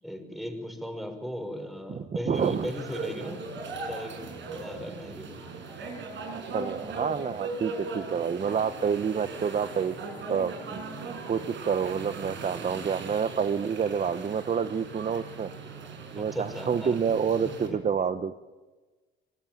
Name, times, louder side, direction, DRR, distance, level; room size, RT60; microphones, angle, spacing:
voice 1, 0.0-3.4 3.8-5.4 16.1-16.9 17.7-17.8, equal, ahead, 6 dB, 5.7 m, -37 dB
voice 2, 1.9-2.7 6.3-9.9 10.3-10.8 11.3-15.5 16.1-18.3, right 6 dB, 40° right, 11 dB, 0.9 m, -28 dB
sound 1, 2.3-17.7, right 4 dB, 70° right, 6.3 m, -39 dB
25.5 x 20.5 x 9.2 m, 1.3 s
cardioid pair, 90°, 20 cm